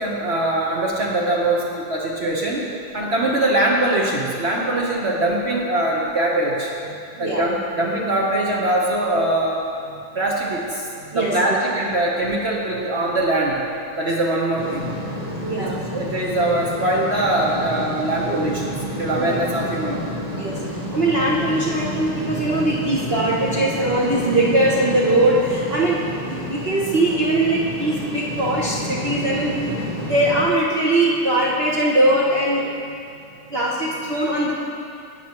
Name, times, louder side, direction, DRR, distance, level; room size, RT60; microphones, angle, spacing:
voice 1, 0.0-2.7 2.9-6.7 7.2-9.6 10.1-10.9 11.1-13.7 14.0-15.0 15.5-20.1, right 1 dB, 55° right, -3 dB, 0.7 m, -22 dB
voice 2, 11.1-11.6 15.4-16.1 19.2-19.3 20.4-20.5 20.9-26.0 26.2-29.6 30.0-32.7 33.5-34.5, right 1 dB, 90° right, -6 dB, 0.5 m, -21 dB
sound 1, 14.6-30.4, equal, 25° right, 1.0 m, -29 dB
17.0 x 5.8 x 3.0 m, 2.5 s
omnidirectional pair, 2.4 m